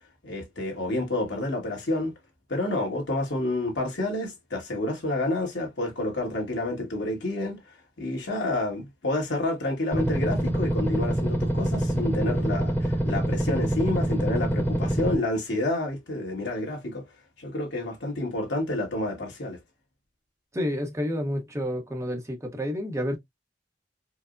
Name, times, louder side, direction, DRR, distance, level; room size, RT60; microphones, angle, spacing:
voice 1, 0.2-2.1 2.5-7.6 8.0-17.0 17.4-19.6, left 2 dB, 85° left, 1.5 m, -29 dB
sound 1, 9.9-15.2, right 1 dB, 10° left, 1.0 m, -25 dB
voice 2, 20.5-23.2, equal, 15° right, 0.8 m, -29 dB
4.5 x 2.1 x 2.4 m
head